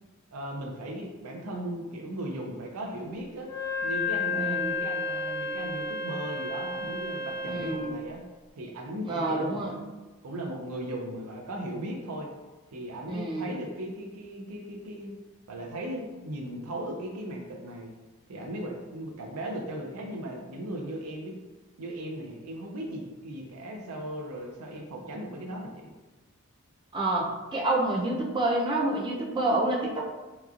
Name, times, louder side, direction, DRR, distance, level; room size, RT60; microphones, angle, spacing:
voice 1, 0.3-3.5 3.8-8.2 8.6-9.7 10.2-12.3 12.7-15.1 15.5-17.9 18.3-21.4 21.8-25.9, right 1 dB, 85° right, 1 dB, 0.5 m, -37 dB
Wind instrument woodwind instrument, 3.4-7.9, left 3 dB, 45° left, 0.6 m, -32 dB
voice 2, 4.3-4.7 7.4-8.0 9.0-9.8 13.1-13.5 26.9-30.0, right 2 dB, 20° right, -3 dB, 0.4 m, -28 dB
2.9 x 2.3 x 2.4 m, 1.2 s
head